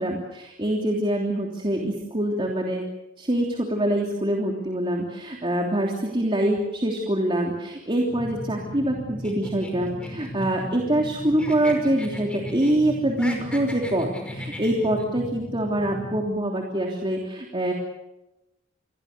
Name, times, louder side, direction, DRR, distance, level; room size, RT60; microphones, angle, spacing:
voice 1, 0.0-2.8 3.2-17.7, right 1 dB, 25° right, 0 dB, 3.2 m, -25 dB
sound 1, 8.1-16.3, equal, 25° left, 7.3 m, -37 dB
sound 2, 9.2-11.1 11.4-12.8 13.1-15.1, left 1 dB, 5° left, 5.6 m, -39 dB
29.5 x 23.0 x 6.8 m, 0.96 s
head